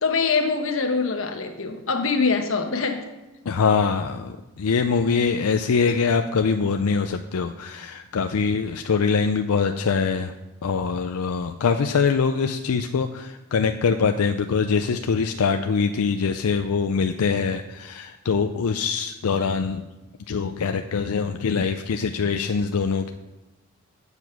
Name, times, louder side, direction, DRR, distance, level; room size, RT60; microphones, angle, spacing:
voice 1, 0.0-3.1 5.9-6.0, left 4 dB, 65° left, 6 dB, 1.0 m, -24 dB
voice 2, 3.5-10.3 10.6-19.8 20.3-23.1, left 5 dB, 90° left, 7 dB, 0.5 m, -23 dB
8.2 x 7.0 x 5.9 m, 1.1 s
head